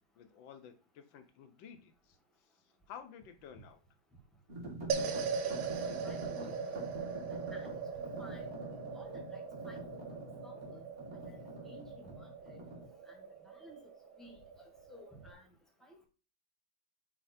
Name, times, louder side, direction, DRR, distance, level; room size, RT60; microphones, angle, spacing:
voice 1, 0.2-2.2 2.9-3.8, left 8 dB, 75° left, 9 dB, 1.5 m, -52 dB
sound 1, 4.5-12.9, right 1 dB, 35° right, 2.2 m, -46 dB
sound 2, 4.9-15.3, right 5 dB, 85° right, 1.6 m, -40 dB
voice 2, 6.0-6.8 7.3-8.4 8.9-10.8 11.2-11.4 11.6-12.6 13.1-13.8 14.2-15.5 15.8-16.1, left 1 dB, ahead, 1 dB, 1.2 m, -56 dB
8.3 x 3.1 x 4.2 m, 0.35 s
omnidirectional pair, 2.1 m